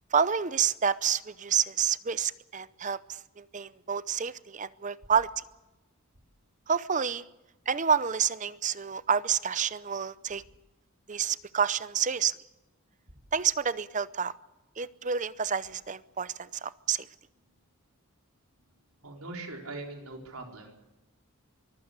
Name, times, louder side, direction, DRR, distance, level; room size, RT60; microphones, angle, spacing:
voice 1, 0.1-5.3 6.7-7.3 7.7-10.4 11.1-12.4 13.3-14.3 14.8-17.1, right 7 dB, 35° right, 17 dB, 0.7 m, -29 dB
voice 2, 19.0-20.7, right 2 dB, 85° right, 3 dB, 4.4 m, -41 dB
24.0 x 15.0 x 8.3 m, 0.98 s
head